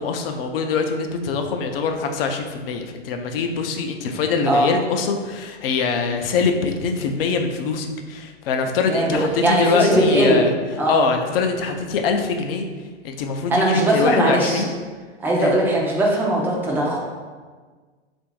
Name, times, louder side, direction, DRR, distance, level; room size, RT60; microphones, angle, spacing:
voice 1, 0.0-10.5 10.9-12.7 13.0-14.7 15.4-15.5, left 5 dB, 55° left, 5 dB, 0.6 m, -23 dB
voice 2, 8.9-10.4 10.8-11.0 13.5-14.7 15.2-17.0, right 1 dB, 5° right, -4 dB, 0.4 m, -19 dB
3.4 x 2.6 x 4.5 m, 1.4 s
hypercardioid pair, 130°, 35 cm